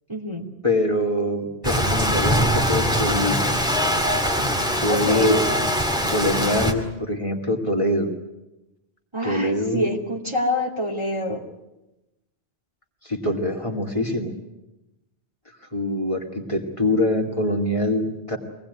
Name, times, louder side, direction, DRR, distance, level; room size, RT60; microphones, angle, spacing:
voice 1, 0.1-0.5 4.9-5.4 9.1-11.4, left 1 dB, 25° right, -1 dB, 2.9 m, -26 dB
voice 2, 0.6-3.5 4.8-5.5 6.1-8.1 9.2-9.9 13.0-14.3 15.7-18.4, left 1 dB, 30° left, 3 dB, 2.5 m, -24 dB
Rain, 1.6-6.7, equal, 5° right, 2.1 m, -22 dB
25.0 x 19.0 x 9.5 m, 0.97 s
omnidirectional pair, 1.1 m